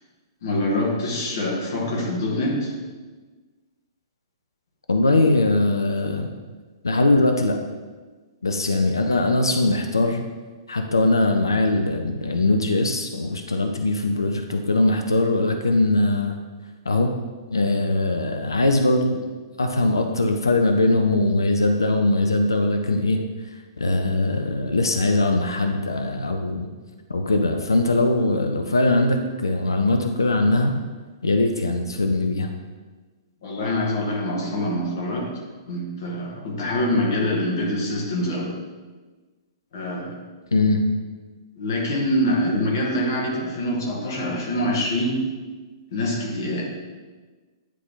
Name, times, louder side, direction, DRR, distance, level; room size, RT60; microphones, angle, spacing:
voice 1, 0.4-2.7 33.4-35.3 35.7-38.5 39.7-40.1 41.6-45.2 45.9-46.6, left 1 dB, 55° left, -2 dB, 1.9 m, -25 dB
voice 2, 4.9-6.3 6.8-7.6 8.4-10.2 10.7-16.4 16.9-17.1 17.5-19.2 19.6-26.7 27.1-30.7 31.2-32.5 40.5-40.8, left 2 dB, 75° left, 5 dB, 0.5 m, -21 dB
10.0 x 3.9 x 3.8 m, 1.3 s
figure-of-eight pair, 110°, 2 cm